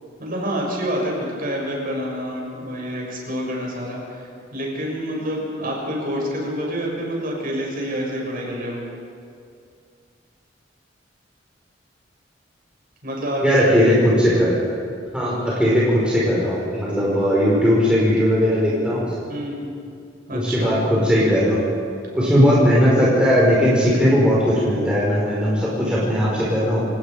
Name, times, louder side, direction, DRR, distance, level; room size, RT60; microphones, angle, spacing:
voice 1, 0.2-8.8 13.0-13.7 15.2-15.5 19.3-19.7 20.3-20.8, equal, 50° right, -2 dB, 7.0 m, -27 dB
voice 2, 13.4-14.6 15.1-19.1 20.3-21.6 22.1-26.9, equal, 5° right, -7 dB, 5.2 m, -18 dB
28.5 x 18.0 x 5.1 m, 2.4 s
head